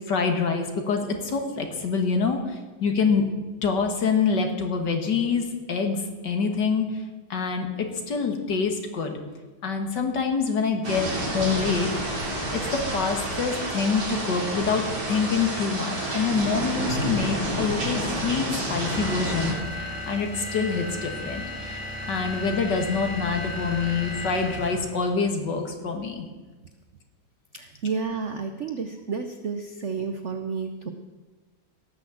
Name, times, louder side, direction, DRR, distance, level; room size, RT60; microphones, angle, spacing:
voice 1, 0.1-2.4 2.8-3.3 3.6-6.9 7.3-9.1 9.6-11.9 12.5-19.6 20.1-21.8 22.1-26.2, left 5 dB, 55° left, 4 dB, 2.1 m, -26 dB
sound 1, 10.8-19.5, right 1 dB, 65° right, 4.0 m, -29 dB
sound 2, 18.8-25.0, left 1 dB, 5° right, 3.6 m, -35 dB
voice 2, 27.5-30.9, right 5 dB, 80° right, 7 dB, 0.6 m, -31 dB
17.5 x 6.4 x 7.7 m, 1.3 s
omnidirectional pair, 2.3 m